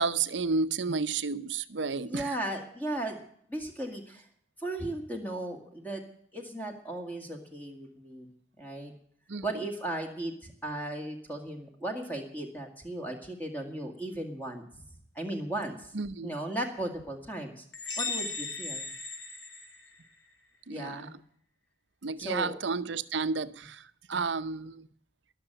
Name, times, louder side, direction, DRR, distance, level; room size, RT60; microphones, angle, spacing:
voice 1, 0.0-2.4 9.3-9.5 15.9-16.3 20.7-21.2 22.0-24.9, right 4 dB, 75° right, 14 dB, 0.8 m, -31 dB
voice 2, 2.0-3.2 3.5-4.3 4.6-6.0 6.3-8.3 8.6-8.9 9.4-14.6 15.2-15.9 16.2-17.6 18.0-18.9 20.7-21.1 22.2-22.6, right 1 dB, 10° left, 3 dB, 2.2 m, -36 dB
sound 1, 17.7-20.3, left 4 dB, 70° left, 3.2 m, -37 dB
20.5 x 6.9 x 8.9 m, 0.63 s
head